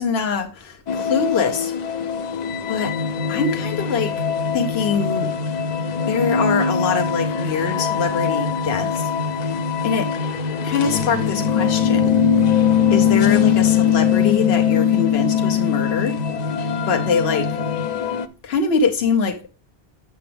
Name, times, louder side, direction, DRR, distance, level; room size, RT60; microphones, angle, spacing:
voice 1, 0.0-1.7 2.7-3.0 3.3-4.2 4.5-5.3 6.0-10.1 10.6-12.2 12.9-16.2 16.9-17.6 18.4-19.5, left 5 dB, 80° left, 1.0 m, -23 dB
sound 1, 0.9-18.3, left 8 dB, 55° left, 0.6 m, -22 dB
sound 2, 2.8-17.9, left 2 dB, 80° right, 1.1 m, -29 dB
7.6 x 6.9 x 3.3 m
omnidirectional pair, 1.0 m